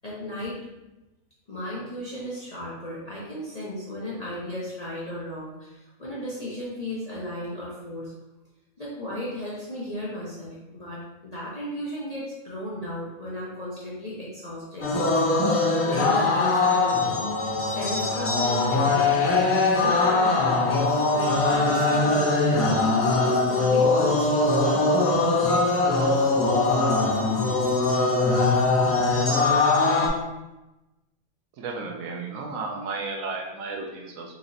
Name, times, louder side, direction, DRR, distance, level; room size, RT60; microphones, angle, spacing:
voice 1, 0.0-0.6 1.5-8.1 8.8-15.2 15.5-17.1 17.7-25.6, left 1 dB, 40° left, -7 dB, 0.6 m, -35 dB
sound 1, 14.8-30.1, left 3 dB, 70° left, 1.3 m, -22 dB
voice 2, 31.6-34.3, right 3 dB, 75° right, 1 dB, 1.0 m, -33 dB
4.1 x 2.9 x 2.6 m, 0.98 s
omnidirectional pair, 1.5 m